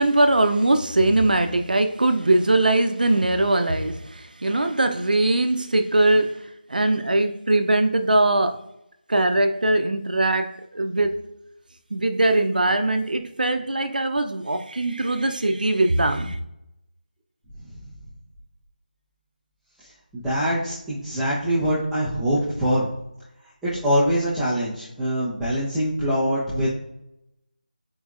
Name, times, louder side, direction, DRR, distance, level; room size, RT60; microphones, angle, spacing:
voice 1, 0.0-8.6 9.1-11.3 11.9-16.4, right 2 dB, 65° right, 0.8 m, -21 dB
voice 2, 19.8-22.9 23.6-26.8, equal, ahead, 1.0 m, -24 dB
9.3 x 4.8 x 2.5 m
figure-of-eight pair, 165°, 5 cm